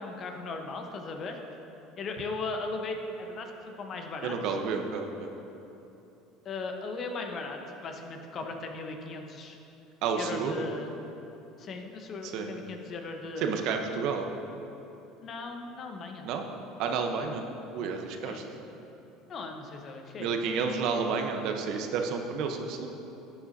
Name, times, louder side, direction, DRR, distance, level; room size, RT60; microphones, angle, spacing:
voice 1, 0.0-1.4 2.0-4.6 6.4-9.6 10.1-10.9 11.6-13.5 15.2-16.3 18.2-18.5 19.3-20.7, left 3 dB, 45° left, 4 dB, 1.0 m, -38 dB
voice 2, 4.2-5.3 10.0-10.6 12.2-12.5 13.4-14.3 16.2-16.4 16.8-17.4 17.7-18.4 20.2-22.9, right 5 dB, 65° right, 4 dB, 0.9 m, -30 dB
11.5 x 8.2 x 2.8 m, 2.9 s
supercardioid pair, 95°, 0 cm